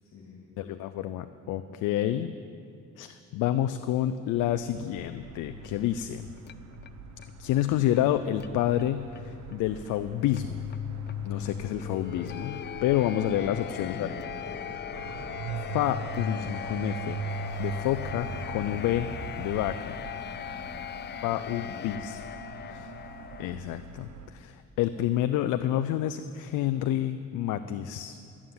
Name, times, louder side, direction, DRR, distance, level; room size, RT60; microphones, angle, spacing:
voice 1, 0.0-0.4 11.3-11.8 13.6-15.0 19.6-21.9 22.5-22.8, left 3 dB, 60° left, -3 dB, 2.4 m, -48 dB
voice 2, 0.6-2.3 3.0-6.3 7.4-10.6 11.2-14.1 15.7-17.2 17.6-19.1 19.4-19.9 21.2-22.2 22.7-22.9 23.4-28.2, left 12 dB, 90° left, 10 dB, 0.5 m, -29 dB
sound 1, 4.3-24.3, right 6 dB, 65° right, 0.9 m, -47 dB
sound 2, 5.5-23.6, left 10 dB, 35° left, 0.4 m, -40 dB
sound 3, 14.9-20.8, right 5 dB, 90° right, 1.0 m, -37 dB
13.5 x 7.3 x 9.4 m, 2.5 s
cardioid pair, 90°, 30 cm